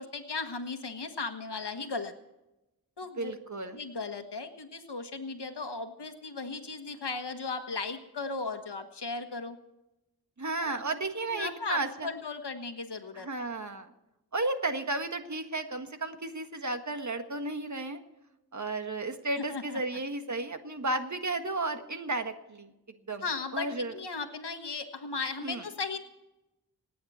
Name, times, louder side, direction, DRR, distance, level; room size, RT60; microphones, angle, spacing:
voice 1, 0.0-2.1 3.0-3.3 3.7-9.6 10.6-10.7 11.3-13.3 19.5-19.6 23.2-26.0, left 4 dB, 80° left, 6 dB, 1.5 m, -36 dB
voice 2, 3.2-3.8 10.4-12.1 13.1-13.9 14.3-18.0 18.5-22.7 23.1-23.2 23.5-24.0 25.4-25.6, right 2 dB, 45° right, 7 dB, 1.6 m, -33 dB
27.5 x 9.5 x 4.3 m, 0.96 s
wide cardioid pair, 75°, 40 cm